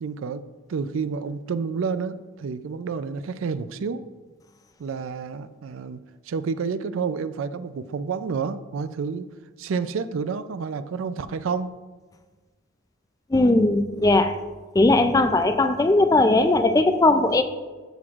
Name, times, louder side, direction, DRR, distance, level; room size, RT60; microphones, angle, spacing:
voice 1, 0.0-0.4 0.7-4.0 4.8-6.0 6.3-9.3 9.6-11.7, right 5 dB, 70° right, 0.4 m, -29 dB
voice 2, 13.3-14.4 14.7-17.4, left 2 dB, 15° left, 0.3 m, -18 dB
13.5 x 6.1 x 2.4 m
head